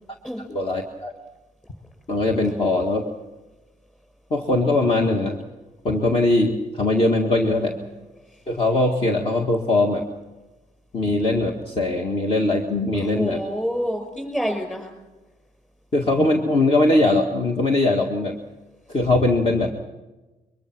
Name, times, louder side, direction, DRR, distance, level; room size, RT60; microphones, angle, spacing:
voice 1, 0.5-1.1 2.1-3.1 4.3-5.4 5.8-7.7 8.5-10.0 10.9-13.4 15.9-18.4 18.9-19.7, left 2 dB, 35° left, 2 dB, 1.9 m, -21 dB
voice 2, 13.0-14.9, equal, 5° left, 4 dB, 5.6 m, -27 dB
22.5 x 22.0 x 6.1 m, 1.1 s
cardioid pair, 130°, 15 cm